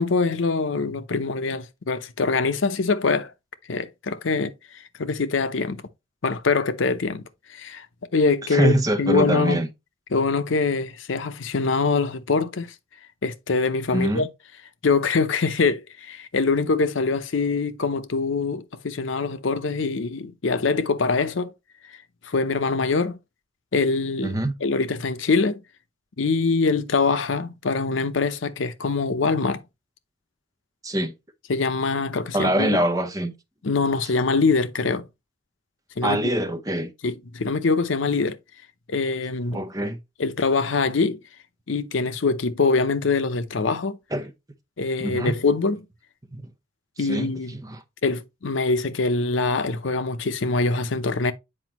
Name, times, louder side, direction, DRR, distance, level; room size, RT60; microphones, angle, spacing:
voice 1, 0.0-3.3 3.7-5.8 6.2-7.2 7.5-7.9 8.1-8.7 9.0-9.6 10.1-12.7 13.2-14.3 14.8-21.5 22.2-23.2 23.7-25.6 26.2-29.6 31.5-32.8 33.6-35.1 36.0-36.2 37.0-38.4 38.9-39.6 40.2-41.2 41.7-44.0 44.8-45.9 47.0-47.5 48.0-51.3, left 4 dB, 80° left, 0.7 m, -24 dB
voice 2, 8.5-9.7 13.9-14.3 24.2-24.5 30.8-31.1 32.3-33.3 36.0-36.9 39.5-40.0 44.1-44.3 45.0-45.4 46.3-46.4 47.0-47.8, right 1 dB, 20° right, 0.7 m, -24 dB
7.7 x 5.1 x 2.9 m
head